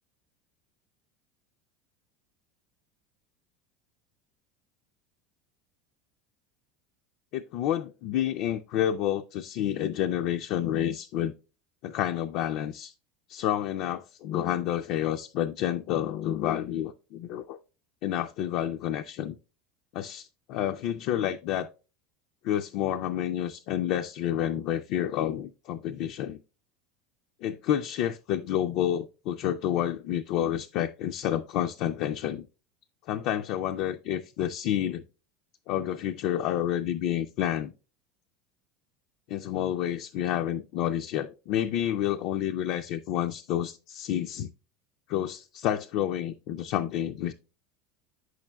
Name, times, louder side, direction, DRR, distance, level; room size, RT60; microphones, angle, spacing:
voice 1, 7.3-11.3 11.8-12.9 13.3-17.6 18.0-19.4 19.9-21.7 22.4-26.4 27.4-32.5 33.1-35.0 35.7-37.7 39.3-44.5 45.1-47.3, left 11 dB, 60° left, 0.3 m, -29 dB
8.3 x 6.2 x 2.2 m
hypercardioid pair, 85°, 0 cm